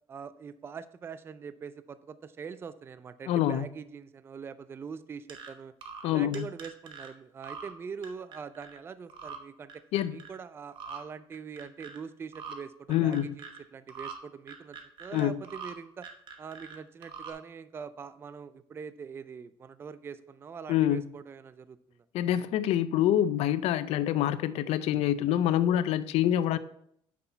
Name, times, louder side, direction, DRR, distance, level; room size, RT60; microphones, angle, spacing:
voice 1, 0.1-5.7 6.0-9.8 10.1-16.1 16.4-22.0, right 6 dB, 20° right, 14 dB, 0.3 m, -43 dB
voice 2, 3.3-3.7 6.0-6.5 9.9-10.2 12.9-13.3 15.1-15.4 20.7-21.0 22.1-26.6, left 11 dB, 75° left, 15 dB, 0.5 m, -26 dB
sound 1, 5.3-5.5 5.8-6.1 6.3-7.1 7.4-7.7 8.0-8.8 9.1-9.4 9.7-10.4 10.7-11.0 11.3-12.0 12.3-12.6 12.9-13.6 13.9-14.1 14.5-15.7 16.0-16.8 17.0-17.3, right 6 dB, 50° right, 1.0 m, -43 dB
8.0 x 6.0 x 4.4 m, 0.71 s
cardioid pair, 150°, 11 cm